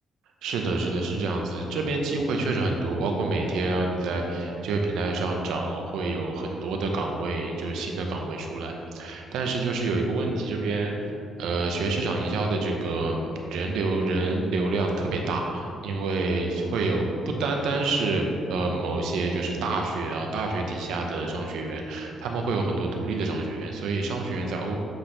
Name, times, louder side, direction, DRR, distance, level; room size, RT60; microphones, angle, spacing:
voice 1, 0.4-11.1 11.4-13.2 13.4-24.8, right 3 dB, 85° right, 2 dB, 0.8 m, -27 dB
8.0 x 4.1 x 3.3 m, 2.5 s
cardioid pair, 90°, 0 cm